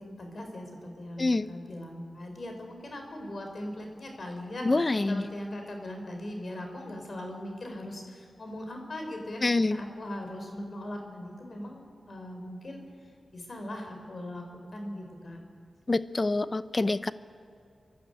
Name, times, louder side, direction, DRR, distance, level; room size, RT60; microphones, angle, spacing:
voice 1, 0.0-13.1 13.3-15.4, left 1 dB, 55° left, 3 dB, 4.2 m, -40 dB
voice 2, 4.6-5.2 9.4-9.8 15.9-17.1, left 2 dB, 35° left, 15 dB, 0.7 m, -26 dB
29.0 x 11.5 x 8.9 m, 2.3 s
cardioid pair, 55°, 0 cm